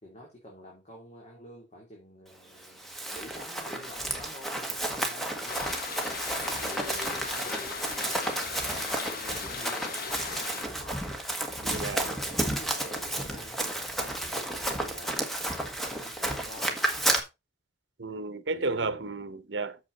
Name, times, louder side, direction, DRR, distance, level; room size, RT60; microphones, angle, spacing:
voice 1, 0.0-5.6 6.5-11.1 12.0-16.7 18.5-19.2, left 1 dB, 40° left, 3.3 m, -48 dB
Run, 2.6-17.2, right 1 dB, ahead, 1.7 m, -32 dB
sound 1, 5.5-10.6, left 5 dB, 55° left, 1.2 m, -38 dB
voice 2, 6.6-7.1 11.6-12.1 18.0-19.8, right 3 dB, 70° right, 1.0 m, -33 dB
8.6 x 7.4 x 4.1 m
head